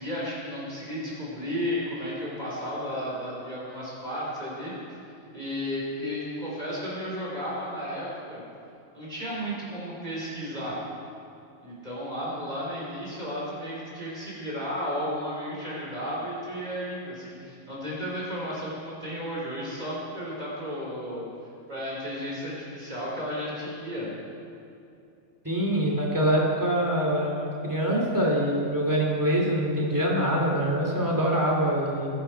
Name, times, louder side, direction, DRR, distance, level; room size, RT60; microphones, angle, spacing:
voice 1, 0.0-4.7 5.3-8.4 8.9-10.8 11.6-21.3 21.7-24.2, equal, 30° right, -6 dB, 4.2 m, -33 dB
voice 2, 25.4-32.1, equal, 15° right, -2 dB, 2.8 m, -24 dB
21.0 x 11.0 x 4.6 m, 2.6 s
omnidirectional pair, 1.4 m